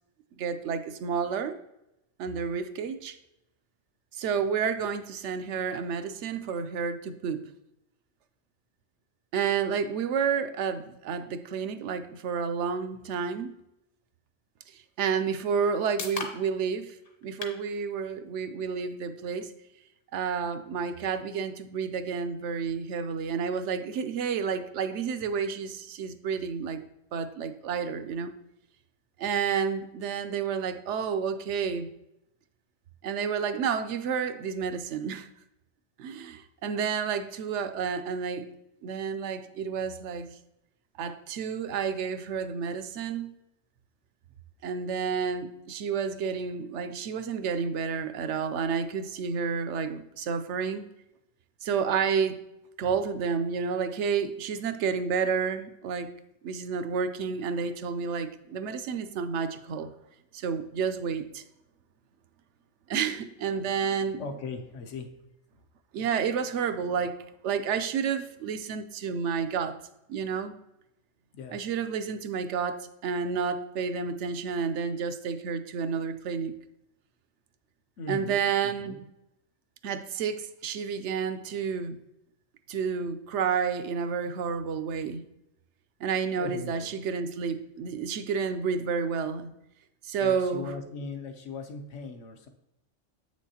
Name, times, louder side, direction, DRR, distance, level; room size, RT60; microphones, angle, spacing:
voice 1, 0.4-1.6 2.2-3.2 4.1-7.5 9.3-13.5 14.7-17.0 17.2-19.5 20.1-26.8 27.1-28.3 29.2-31.9 33.0-35.3 36.0-38.5 38.8-40.4 41.0-43.3 44.6-50.9 51.6-52.4 52.8-56.1 56.4-59.9 60.3-61.4 62.9-64.2 65.9-69.8 70.1-70.5 71.5-76.6 78.1-78.9 79.8-82.0 82.7-85.2 86.0-89.5 90.0-90.7, right 6 dB, 75° right, 10 dB, 0.9 m, -30 dB
sound 1, 15.2-29.1, left 3 dB, 55° left, 1.0 m, -48 dB
voice 2, 64.2-65.1 71.3-71.6 78.0-79.0 86.4-87.0 90.2-92.5, left 4 dB, 75° left, 5 dB, 1.1 m, -39 dB
7.9 x 6.2 x 2.8 m, 0.86 s
omnidirectional pair, 1.3 m